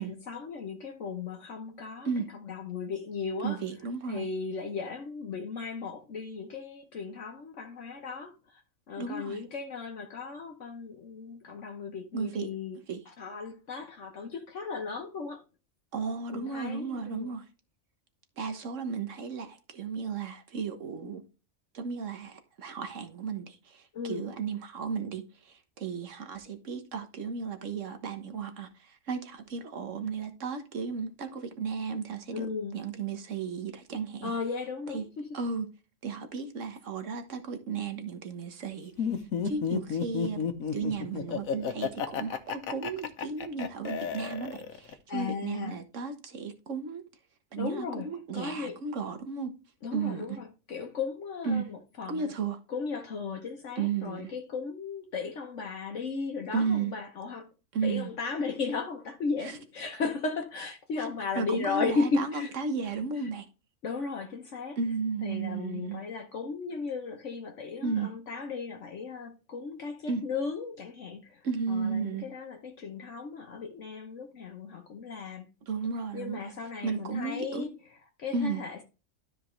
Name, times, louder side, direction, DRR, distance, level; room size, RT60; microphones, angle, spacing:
voice 1, 0.0-3.6 4.1-8.6 8.9-12.8 13.1-15.4 16.3-17.3 23.9-24.3 32.3-32.8 34.2-35.3 45.1-45.8 47.6-48.1 48.3-48.8 49.8-52.3 52.7-57.5 57.8-62.5 63.1-63.3 63.8-64.8 65.2-75.5 76.1-78.8, left 4 dB, 65° left, 1.3 m, -36 dB
voice 2, 3.4-4.2 9.0-9.4 12.1-12.5 12.9-13.0 15.9-17.4 18.4-21.2 21.7-32.5 32.7-34.3 34.9-35.0 35.3-35.7 36.0-38.9 39.4-40.4 40.7-47.0 47.5-49.5 49.9-50.4 51.4-51.7 52.1-52.6 53.8-54.3 56.5-56.9 57.7-58.1 59.4-59.6 61.3-63.4 64.8-66.0 67.8-68.1 70.1-70.2 71.4-72.3 75.7-76.5 76.8-77.7 78.3-78.6, right 5 dB, 65° right, 1.6 m, -34 dB
Laughter, 39.0-44.9, left 7 dB, 85° left, 1.4 m, -32 dB
12.5 x 4.9 x 3.2 m
omnidirectional pair, 1.4 m